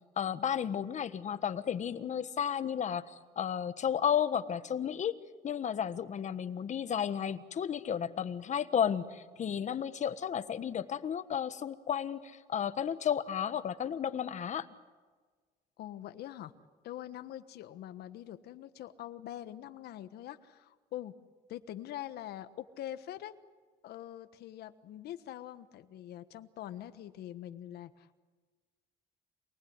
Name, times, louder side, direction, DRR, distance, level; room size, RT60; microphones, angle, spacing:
voice 1, 0.2-5.2 5.4-14.7, left 8 dB, 45° left, 12 dB, 1.4 m, -33 dB
voice 2, 15.8-16.5 16.8-21.1 21.5-23.3 23.8-28.2, left 12 dB, 70° left, 11 dB, 1.3 m, -44 dB
27.0 x 20.0 x 9.6 m, 1.4 s
cardioid pair, 110°, 17 cm